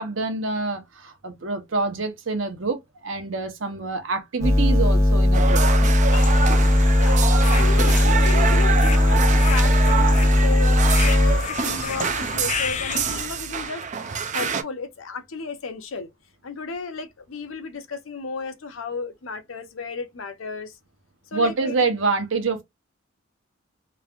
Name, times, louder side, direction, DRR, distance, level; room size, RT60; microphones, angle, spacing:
voice 1, 0.0-2.8 3.0-5.6 21.3-22.6, right 3 dB, 70° right, 0.9 m, -26 dB
sound 1, 4.4-11.4, left 1 dB, 15° right, 0.9 m, -18 dB
sound 2, 5.3-14.6, right 6 dB, 40° right, 0.4 m, -27 dB
sound 3, 6.1-13.3, left 6 dB, 35° left, 0.4 m, -32 dB
voice 2, 6.9-7.2 7.6-13.8 14.3-16.1 16.4-20.7 21.3-21.7, left 4 dB, 85° left, 0.7 m, -33 dB
3.2 x 2.5 x 2.4 m
head